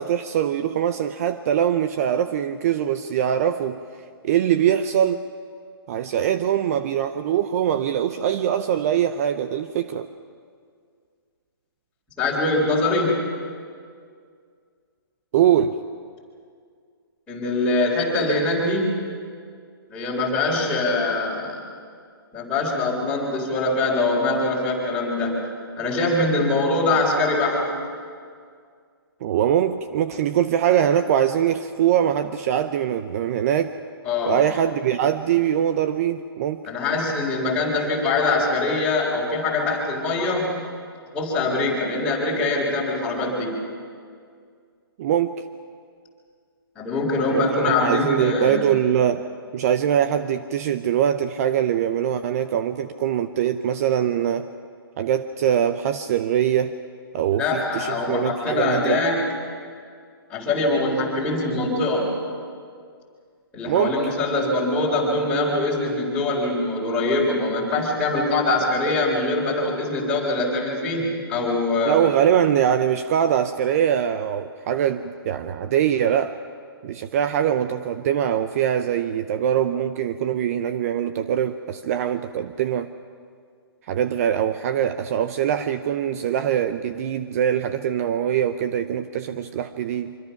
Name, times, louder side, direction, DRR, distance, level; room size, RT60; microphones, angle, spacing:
voice 1, 0.0-3.8 4.2-5.3 5.9-10.1 15.3-15.8 29.2-33.8 34.3-36.6 45.0-45.4 47.3-49.2 49.5-54.5 55.0-56.8 57.1-59.0 63.6-64.0 71.9-76.4 76.8-82.9 83.9-90.2, right 9 dB, 40° right, 10 dB, 0.7 m, -22 dB
voice 2, 12.2-13.2 17.3-18.9 19.9-21.6 22.3-25.4 25.8-27.6 34.1-34.4 36.7-40.5 41.1-43.6 46.8-48.7 57.4-59.3 60.3-62.1 63.5-72.0, left 2 dB, 5° left, -7 dB, 3.9 m, -23 dB
25.0 x 24.5 x 5.9 m, 2.1 s
hypercardioid pair, 150°, 13 cm